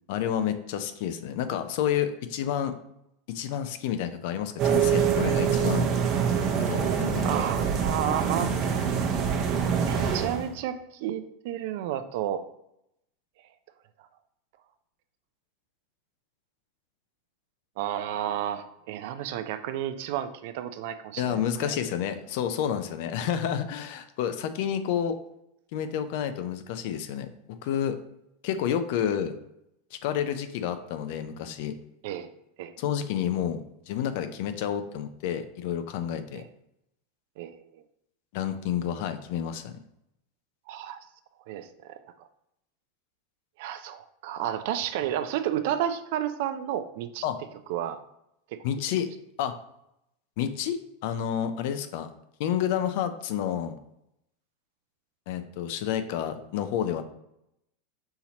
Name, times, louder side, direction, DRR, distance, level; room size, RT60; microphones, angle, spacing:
voice 1, 0.1-2.7 3.3-5.9 6.5-7.3 21.2-25.2 25.7-27.3 27.6-28.0 28.4-29.4 29.9-31.7 32.8-33.6 33.9-36.4 38.3-39.8 47.2-47.4 48.6-49.1 49.4-49.5 50.4-50.8 51.0-52.1 52.4-53.8 55.3-57.0, left 9 dB, 65° left, 10 dB, 0.4 m, -29 dB
sound 1, 4.6-10.5, right 7 dB, 45° right, 0.7 m, -25 dB
voice 2, 7.2-8.5 9.4-12.4 17.8-21.7 32.0-32.3 32.6-32.7 36.3-36.4 37.4-37.6 40.7-41.0 41.5-42.3 43.6-47.2 47.7-48.0, right 10 dB, 65° right, 10 dB, 0.3 m, -32 dB
5.6 x 2.8 x 2.8 m, 0.82 s
hypercardioid pair, 100°, 0 cm